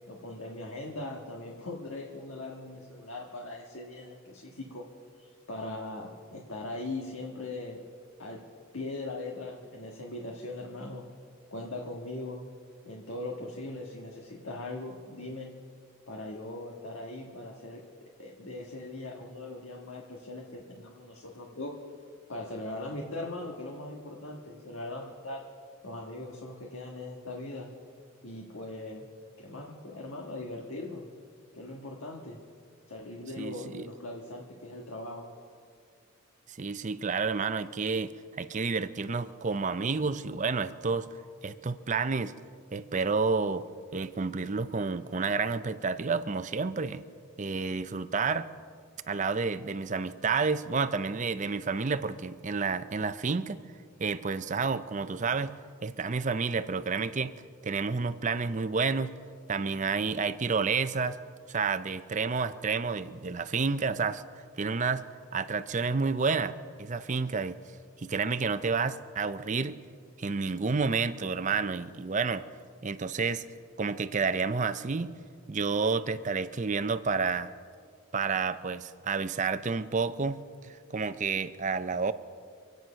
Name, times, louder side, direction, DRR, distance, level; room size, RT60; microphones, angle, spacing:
voice 1, 0.1-4.8 5.2-7.8 8.2-8.4 8.7-11.0 11.5-12.5 12.8-15.5 16.1-17.8 18.2-21.7 22.3-25.4 25.8-27.7 28.2-29.1 29.4-31.0 31.5-32.4 32.9-35.3, left 2 dB, 70° left, 0 dB, 1.6 m, -40 dB
voice 2, 33.4-33.9 36.5-38.1 38.4-41.1 41.4-42.3 42.7-43.6 43.9-47.0 47.4-48.5 49.1-53.6 54.0-55.6 55.8-57.3 57.6-59.1 59.5-61.2 61.5-64.2 64.6-65.0 65.3-67.6 68.0-69.8 70.2-72.4 72.8-73.4 73.8-75.1 75.5-77.5 78.1-82.1, right 4 dB, 35° right, 12 dB, 0.5 m, -30 dB
26.0 x 9.2 x 5.7 m, 2.1 s
head